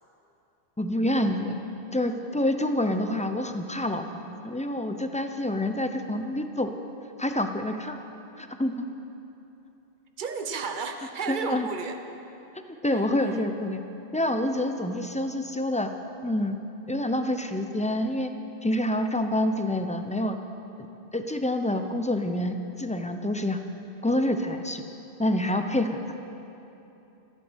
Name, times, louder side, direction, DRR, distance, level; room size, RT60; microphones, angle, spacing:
voice 1, 0.8-1.6 1.9-6.7 7.2-8.0 8.4-8.9 11.3-11.7 12.8-13.8 14.1-15.9 16.2-16.6 16.9-18.3 18.6-20.4 20.8-20.9 21.1-23.6 24.0-24.8 25.2-26.0, left 1 dB, 10° left, 6 dB, 0.7 m, -27 dB
voice 2, 10.2-12.0 12.9-13.5, right 5 dB, 50° right, 6 dB, 1.1 m, -33 dB
14.0 x 12.0 x 8.1 m, 2.9 s
omnidirectional pair, 1.1 m